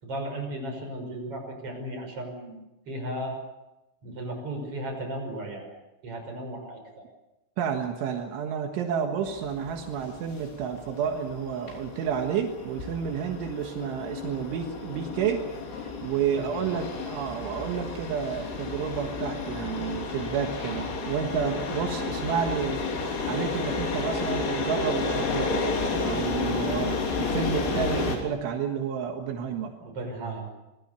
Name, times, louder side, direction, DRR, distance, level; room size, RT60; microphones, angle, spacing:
voice 1, 0.0-2.6 2.9-3.4 4.0-5.7 6.0-7.0 16.3-16.7 29.8-30.4, right 1 dB, 30° right, 2 dB, 6.4 m, -35 dB
voice 2, 7.6-15.4 15.7-22.9 23.3-25.7 26.0-29.7, right 7 dB, 80° right, 3 dB, 4.0 m, -30 dB
sound 1, 9.2-28.2, left 4 dB, 85° left, 5.9 m, -32 dB
26.5 x 20.5 x 6.9 m, 0.96 s
omnidirectional pair, 5.5 m